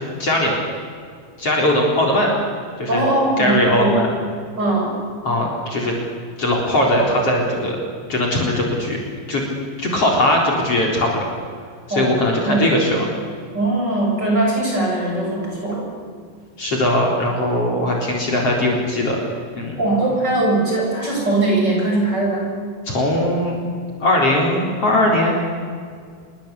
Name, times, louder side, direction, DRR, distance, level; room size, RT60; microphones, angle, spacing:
voice 1, 0.2-0.6 1.4-2.3 2.8-3.1 3.4-4.1 5.2-5.9 6.4-7.8 8.1-9.0 9.3-9.4 9.8-11.2 11.9-13.0 16.6-19.2 19.5-19.8 22.8-23.6 24.0-25.5, left 1 dB, 40° left, -1 dB, 4.9 m, -19 dB
voice 2, 2.9-4.0 4.6-5.0 11.9-12.7 13.5-15.9 19.8-22.5, right 2 dB, 25° right, -1 dB, 8.1 m, -20 dB
27.5 x 23.0 x 8.4 m, 2.1 s
omnidirectional pair, 4.1 m